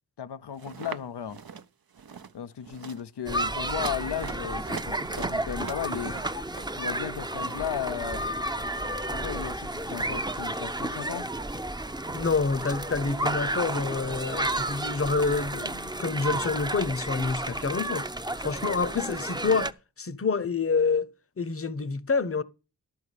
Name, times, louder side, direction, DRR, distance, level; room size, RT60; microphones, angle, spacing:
voice 1, 0.2-1.4 2.3-6.2 6.8-8.3 9.1-11.3, left 8 dB, 90° left, 0.6 m, -35 dB
sound 1, 0.6-1.0 1.3-1.6 1.9-2.3 2.6-3.0 3.6-6.7, right 6 dB, 60° right, 0.8 m, -42 dB
sound 2, 3.3-19.7, right 1 dB, 10° right, 0.6 m, -32 dB
voice 2, 12.1-18.1 18.4-21.1 21.4-22.4, left 4 dB, 35° left, 0.8 m, -27 dB
12.5 x 4.8 x 8.2 m
wide cardioid pair, 45°, 40 cm